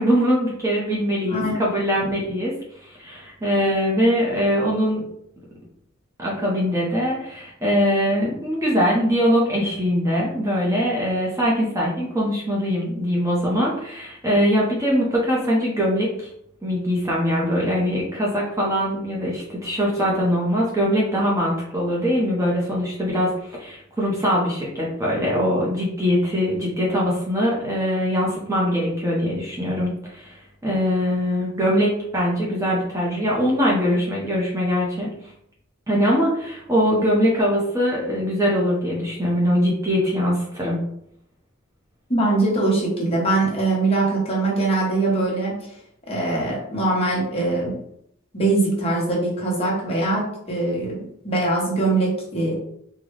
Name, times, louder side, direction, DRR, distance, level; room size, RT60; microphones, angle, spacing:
voice 1, 0.0-2.5 2.8-5.0 6.2-16.3 16.6-30.4 30.6-35.1 35.9-40.8, equal, 15° right, -5 dB, 0.7 m, -22 dB
voice 2, 42.1-45.5 46.1-47.8 48.3-52.6, right 2 dB, 30° left, -4 dB, 1.1 m, -22 dB
3.8 x 2.2 x 3.2 m, 0.72 s
head